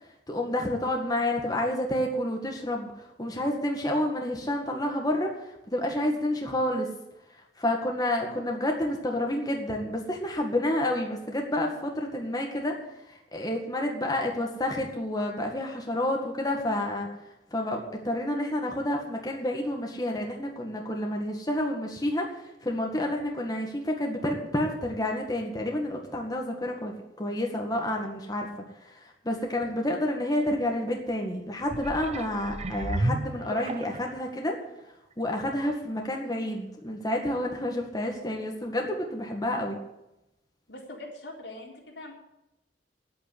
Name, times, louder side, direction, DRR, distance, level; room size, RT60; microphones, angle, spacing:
voice 1, 0.3-6.9 7.6-12.8 13.0-17.1 17.5-28.5 28.8-34.6 35.2-39.8, left 1 dB, 20° left, 1 dB, 1.8 m, -29 dB
sound 1, 31.6-34.3 34.9-35.0, right 2 dB, 40° right, 0.8 m, -32 dB
voice 2, 40.7-42.1, left 2 dB, 85° left, -2 dB, 4.0 m, -42 dB
10.5 x 8.6 x 9.8 m, 0.90 s
head